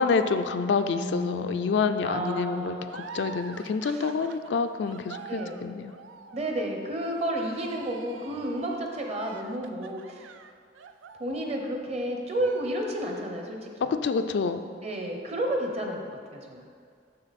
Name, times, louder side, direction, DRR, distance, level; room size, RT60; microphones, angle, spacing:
voice 1, 0.0-5.9 14.0-14.6, left 5 dB, 65° left, 8 dB, 0.4 m, -27 dB
voice 2, 0.9-3.0 3.9-4.1 5.3-5.6 6.3-10.3 11.2-13.7 14.8-16.6, right 1 dB, 35° right, 2 dB, 0.8 m, -32 dB
sound 1, 2.8-11.9 12.3-13.3, right 5 dB, 85° right, 0.4 m, -46 dB
6.7 x 6.5 x 4.2 m, 2.2 s
head